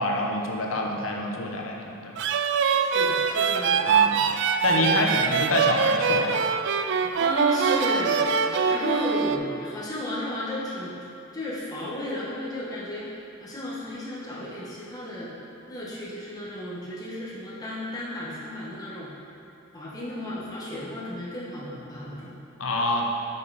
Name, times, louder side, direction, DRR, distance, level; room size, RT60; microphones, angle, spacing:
voice 1, 0.0-2.1 3.8-4.2 4.6-6.5 22.6-23.1, left 1 dB, 75° left, 1 dB, 0.9 m, -26 dB
sound 1, 2.2-9.4, right 6 dB, 60° right, 0.3 m, -23 dB
voice 2, 2.8-5.0 6.8-8.2 8.7-11.0 11.3-13.1 13.4-15.3 15.7-19.1 19.7-22.4, left 1 dB, 20° left, -7 dB, 1.4 m, -34 dB
8.4 x 5.3 x 4.3 m, 2.7 s
head